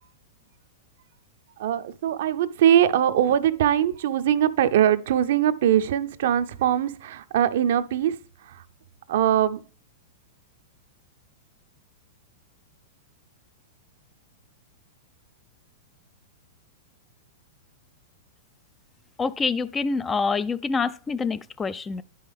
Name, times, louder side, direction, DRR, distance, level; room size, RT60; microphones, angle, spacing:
voice 1, 1.6-8.6 9.1-9.6, right 10 dB, 65° right, 0.5 m, -22 dB
voice 2, 19.2-22.0, left 4 dB, 15° left, 0.3 m, -26 dB
9.6 x 5.4 x 3.4 m
hypercardioid pair, 120°, 0 cm